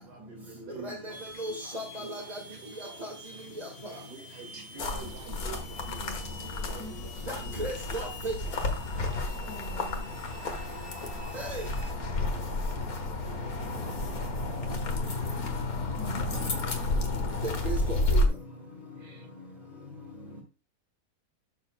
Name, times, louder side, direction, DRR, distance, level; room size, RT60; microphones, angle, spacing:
voice 1, 0.0-3.5 3.8-7.9 9.1-9.7 18.8-19.6, right 3 dB, 85° right, 4 dB, 2.7 m, -49 dB
sound 1, 1.1-11.9, left 3 dB, 30° left, 1.4 m, -48 dB
voice 2, 1.4-2.4 3.0-3.1 3.6-3.7 7.3-8.3 11.3-11.7 17.4-18.3, right 2 dB, 25° right, 0 dB, 1.7 m, -36 dB
sound 2, 4.8-18.3, left 2 dB, 65° left, 1.9 m, -31 dB
voice 3, 6.7-7.5 8.6-8.7 9.5-10.1 16.0-16.6, right 2 dB, 55° right, 5 dB, 1.4 m, -44 dB
11.5 x 6.8 x 2.2 m, 0.33 s
omnidirectional pair, 1.7 m